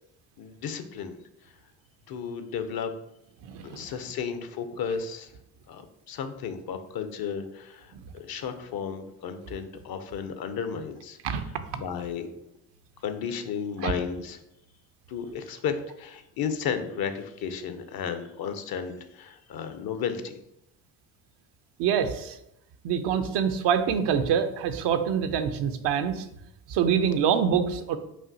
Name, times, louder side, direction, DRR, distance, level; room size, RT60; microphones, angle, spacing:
voice 1, 0.4-1.2 2.1-2.9 3.6-5.3 5.7-11.2 11.8-12.2 13.0-14.4 15.1-20.4, left 7 dB, 55° left, 9 dB, 0.6 m, -33 dB
voice 2, 3.5-3.8 11.2-11.4 11.7-11.8 13.8-13.9 21.8-22.4 22.8-26.2 26.7-28.0, right 7 dB, 70° right, 9 dB, 0.5 m, -25 dB
5.6 x 2.4 x 2.7 m, 0.81 s
supercardioid pair, 60°, 44 cm